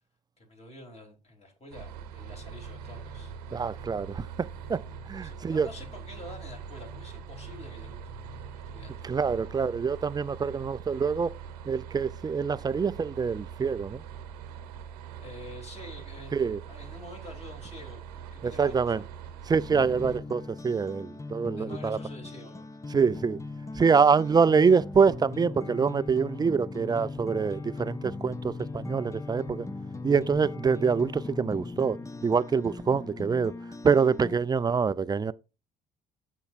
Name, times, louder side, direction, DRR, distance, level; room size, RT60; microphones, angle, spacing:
voice 1, 0.4-3.3 5.2-9.2 15.2-19.1 21.6-22.7, left 2 dB, 30° left, 3.2 m, -47 dB
sound 1, 1.7-20.2, right 8 dB, 85° right, 0.9 m, -43 dB
sound 2, 2.2-9.0, left 6 dB, 85° left, 2.2 m, -51 dB
voice 2, 3.5-5.7 9.0-11.3 11.7-14.0 16.3-16.6 18.4-19.0 19.5-22.0 22.9-23.4 23.7-29.7 30.0-33.5 33.8-35.3, right 5 dB, 20° right, 0.4 m, -25 dB
sound 3, 19.6-34.4, left 3 dB, 15° left, 0.7 m, -39 dB
13.0 x 4.6 x 2.5 m
hypercardioid pair, 55°, 20 cm